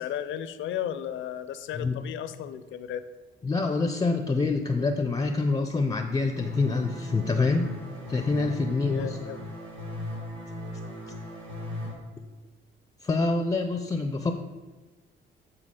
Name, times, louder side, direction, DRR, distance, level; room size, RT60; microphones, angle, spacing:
voice 1, 0.0-3.1 8.9-9.4, left 10 dB, 75° left, 12 dB, 0.5 m, -34 dB
voice 2, 3.4-7.7 8.1-9.2 13.0-14.3, left 3 dB, 20° left, 6 dB, 0.4 m, -26 dB
sound 1, 6.4-11.9, left 1 dB, 80° right, 1.4 m, -37 dB
8.2 x 4.3 x 3.7 m, 1.3 s
cardioid pair, 90°, 20 cm